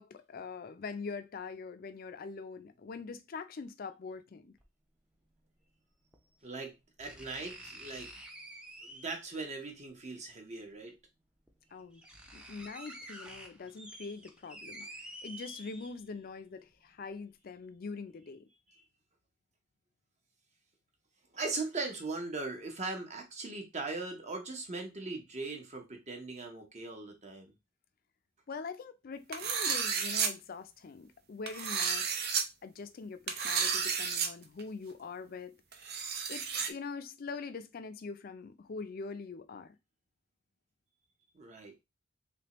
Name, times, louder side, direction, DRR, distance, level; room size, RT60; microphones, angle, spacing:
voice 1, 0.0-4.5 11.7-12.0 12.3-18.5 28.5-32.1 32.6-35.6 36.3-39.8, left 4 dB, 50° left, 0.4 m, -43 dB
sound 1, 4.6-4.7 6.1-6.2 7.0-9.4 10.7-10.8 11.5-11.6 11.8-16.2 16.7-16.8, right 1 dB, 5° right, 0.5 m, -49 dB
voice 2, 6.4-8.1 8.8-11.0 12.2-12.4 18.7-18.8 21.3-27.5 41.3-41.8, right 3 dB, 35° right, 0.9 m, -40 dB
sound 2, 29.3-30.3 31.5-32.4 33.3-34.3 34.6-34.7 35.7-36.7, right 6 dB, 55° right, 0.6 m, -32 dB
3.4 x 3.3 x 2.9 m
head